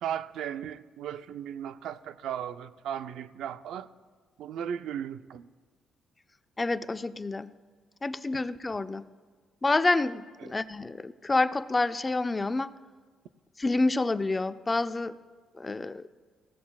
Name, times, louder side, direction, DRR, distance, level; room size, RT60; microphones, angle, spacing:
voice 1, 0.0-3.9 4.4-5.5 8.3-8.4 10.4-10.5, right 9 dB, 80° right, 0.4 m, -36 dB
voice 2, 6.6-7.5 8.0-9.1 9.6-12.7 13.6-15.2 15.6-16.1, left 2 dB, 25° left, 0.4 m, -28 dB
20.0 x 16.0 x 2.3 m
cardioid pair, 90°, 0 cm